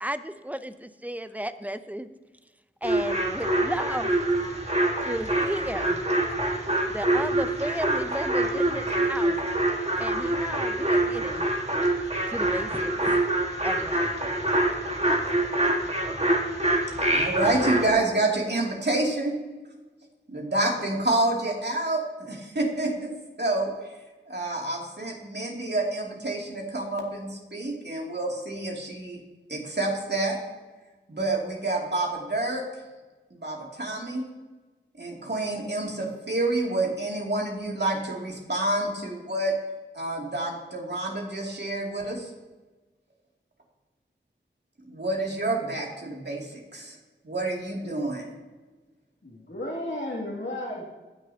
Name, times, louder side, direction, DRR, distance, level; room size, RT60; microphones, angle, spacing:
voice 1, 0.0-2.1 2.8-4.2 5.0-6.0 6.9-9.4 10.0-11.5 12.3-13.3 13.6-14.1 16.4-16.6, right 1 dB, 10° right, 11 dB, 0.6 m, -34 dB
sound 1, 2.8-17.9, right 1 dB, 35° right, 1.6 m, -25 dB
voice 2, 17.1-19.4 20.3-24.0 24.3-29.2 29.5-30.4 31.1-32.6 33.3-34.2 35.0-39.5 39.9-42.3 44.8-47.0 47.2-48.3, right 2 dB, 60° right, -2 dB, 2.6 m, -28 dB
voice 3, 49.2-50.8, left 1 dB, 70° left, -5 dB, 2.5 m, -33 dB
16.5 x 6.4 x 2.8 m, 1.2 s
wide cardioid pair, 45°, 20 cm